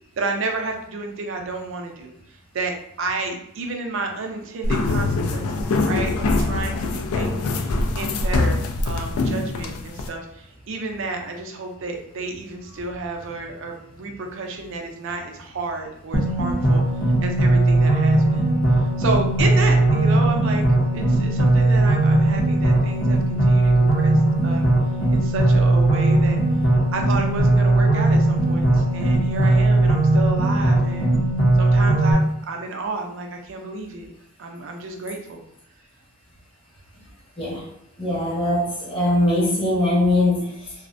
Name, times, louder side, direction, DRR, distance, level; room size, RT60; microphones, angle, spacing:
voice 1, 0.2-2.1 2.5-16.8 17.2-18.5 19.0-20.7 20.9-24.7 25.1-26.4 26.9-31.1 31.6-34.1 34.4-35.4, right 3 dB, 60° right, 3 dB, 0.4 m, -31 dB
sound 1, 4.6-10.1, left 2 dB, 85° left, 0.3 m, -23 dB
sound 2, 16.1-32.1, right 2 dB, 60° left, 0.7 m, -18 dB
voice 2, 38.0-40.7, left 1 dB, 25° left, -5 dB, 0.7 m, -21 dB
2.4 x 2.1 x 2.5 m, 0.75 s
head